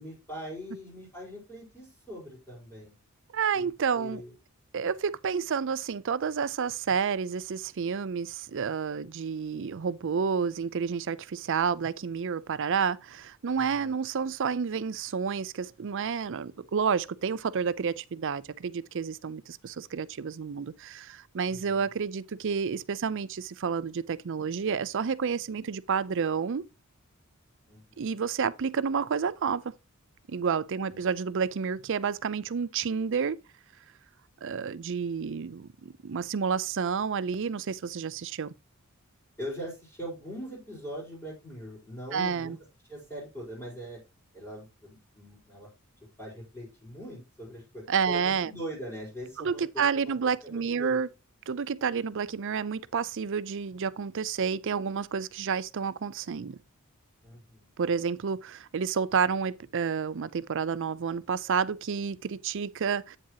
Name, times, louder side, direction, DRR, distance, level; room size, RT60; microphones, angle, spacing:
voice 1, 0.0-2.9 3.5-3.7 3.9-4.3 13.5-13.9 21.5-21.9 27.7-28.2 30.9-31.0 39.4-42.5 42.9-44.0 44.3-45.7 46.2-50.1 50.4-51.0 57.2-57.7, equal, 10° left, 4.6 m, -42 dB
voice 2, 3.3-4.2 4.7-26.7 28.0-29.6 30.3-33.4 34.4-38.5 42.1-42.6 47.9-48.5 49.4-51.1 51.5-56.6 57.8-63.2, right 6 dB, 60° right, 0.5 m, -30 dB
8.8 x 7.4 x 2.9 m
head